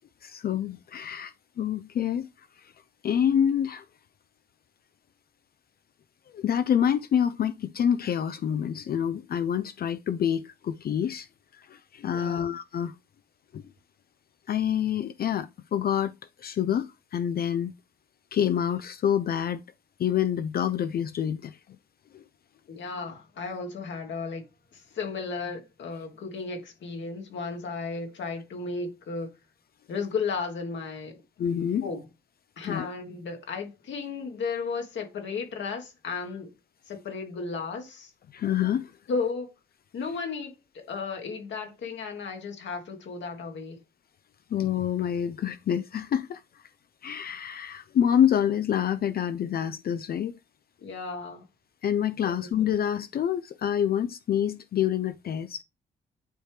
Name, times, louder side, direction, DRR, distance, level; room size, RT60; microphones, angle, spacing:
voice 1, 0.2-2.3 2.6-2.7 3.0-3.9 6.3-11.3 11.5-12.9 13.5-13.6 14.5-16.1 16.4-17.7 18.3-19.6 20.0-21.6 22.1-22.2 31.4-31.9 32.7-32.9 38.3-38.9 44.5-46.4 47.0-50.3 51.8-55.6, left 9 dB, 50° left, 0.4 m, -27 dB
voice 2, 12.1-12.5 22.7-24.5 24.7-29.3 29.9-31.2 31.8-32.1 32.6-36.5 36.9-38.1 39.1-39.5 39.9-43.8 50.8-51.4 52.2-52.5, left 4 dB, 70° left, 1.5 m, -34 dB
9.1 x 3.2 x 3.3 m
supercardioid pair, 60°, 20 cm